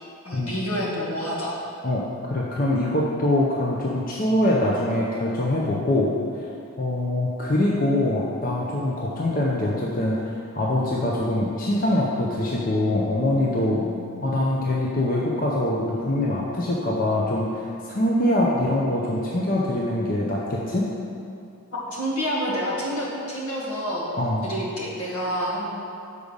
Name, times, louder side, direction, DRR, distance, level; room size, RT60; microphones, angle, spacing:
voice 1, 0.2-1.5 13.7-14.1 21.9-24.0 24.4-25.7, equal, 80° left, -5 dB, 1.8 m, -28 dB
voice 2, 1.8-6.5 6.8-13.8 14.2-20.9 24.2-24.5, left 1 dB, 40° left, -4 dB, 0.6 m, -24 dB
6.7 x 4.9 x 5.2 m, 2.5 s
head